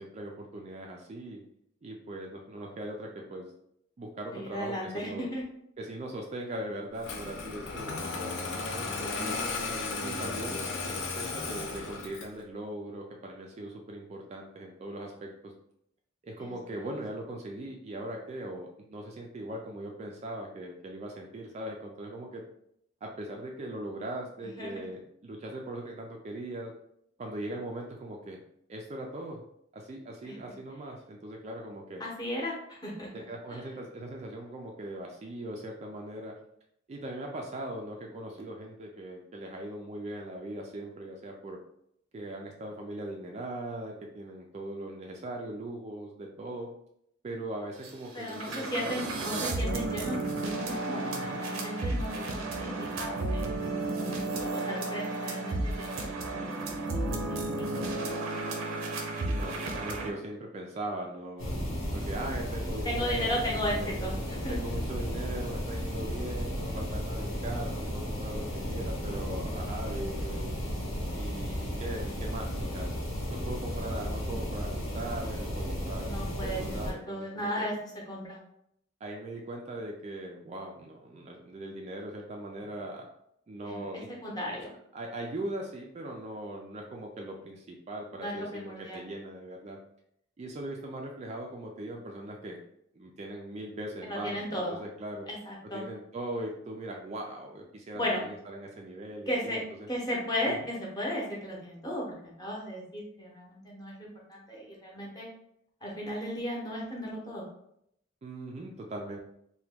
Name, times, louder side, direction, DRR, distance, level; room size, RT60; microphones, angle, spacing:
voice 1, 0.0-1.4 1.8-3.5 4.0-5.3 5.8-9.4 10.0-15.5 16.2-22.4 23.0-26.7 27.2-28.4 28.7-29.4 29.7-32.0 33.3-36.4 36.9-41.6 42.1-46.7 47.2-49.1 51.0-51.4 52.1-52.8 59.2-61.6 61.9-63.9 64.5-70.6 71.1-72.9 73.3-77.7 79.0-83.1 83.5-84.1 84.9-89.8 90.4-92.6 93.0-95.3 95.7-99.9 100.5-100.6 108.2-109.2, right 1 dB, 30° right, 1 dB, 0.3 m, -40 dB
voice 2, 4.3-5.4 10.2-10.6 16.4-16.9 24.4-24.8 30.2-30.4 32.0-33.6 48.1-52.7 52.9-53.5 54.4-57.9 58.2-58.5 62.8-64.6 76.0-78.4 83.6-84.7 88.2-89.0 94.1-94.8 95.3-95.9 97.9-98.2 99.3-99.6 99.9-105.3 105.8-107.5, equal, 20° left, -3 dB, 0.8 m, -36 dB
Engine starting, 7.0-12.4, left 3 dB, 60° left, 0.5 m, -35 dB
sound 1, 47.8-47.9 48.2-60.1, right 2 dB, 80° right, 0.5 m, -33 dB
sound 2, 61.4-76.9, equal, 80° left, 1.2 m, -34 dB
2.9 x 2.2 x 3.4 m, 0.74 s
head